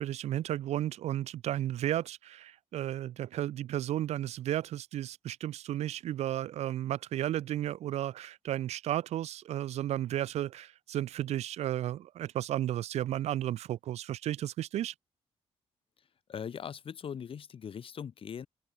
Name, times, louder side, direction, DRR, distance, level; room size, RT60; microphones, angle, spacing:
voice 1, 0.0-14.9, right 12 dB, 75° right, 0.4 m, -33 dB
voice 2, 16.3-18.5, left 7 dB, 55° left, 3.1 m, -40 dB
open air
cardioid pair, 125°, 11 cm